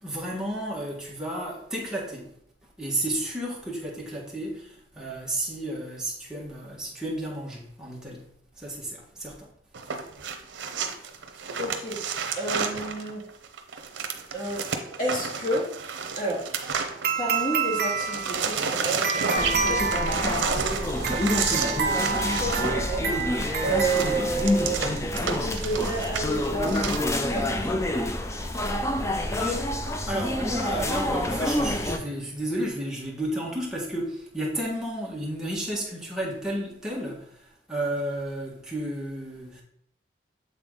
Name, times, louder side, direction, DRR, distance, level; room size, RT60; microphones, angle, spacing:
voice 1, 0.0-2.3 2.8-8.3 8.6-9.5 11.3-11.5 28.5-28.7 29.4-39.6, right 1 dB, 5° right, 1.5 m, -32 dB
sound 1, 9.7-17.5 17.7-27.0, right 5 dB, 85° right, 0.7 m, -31 dB
voice 2, 11.6-12.0 12.4-13.2 14.3-15.7 16.2-16.6 17.2-23.4 23.6-26.8 27.3-27.8, right 2 dB, 45° left, 2.5 m, -31 dB
sound 2, 17.0-24.7, right 5 dB, 55° right, 0.6 m, -29 dB
sound 3, 19.4-32.0, left 1 dB, 15° left, 0.4 m, -28 dB
7.9 x 3.8 x 3.8 m
head